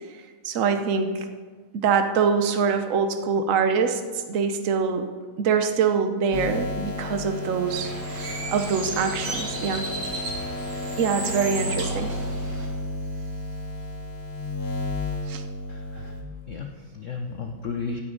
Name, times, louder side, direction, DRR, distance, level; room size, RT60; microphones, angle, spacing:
voice 1, 0.4-1.3 1.7-5.0 5.4-9.9 11.0-12.1 15.3-15.4, right 6 dB, 55° right, 7 dB, 0.9 m, -24 dB
sound 1, 6.3-16.2, left 2 dB, 30° left, 2.1 m, -32 dB
Bird, 7.7-12.7, right 2 dB, 90° right, 3.0 m, -34 dB
voice 2, 15.7-16.1 16.5-18.0, left 4 dB, 75° left, 4 dB, 0.7 m, -34 dB
16.5 x 9.3 x 3.9 m, 1.5 s
omnidirectional pair, 2.4 m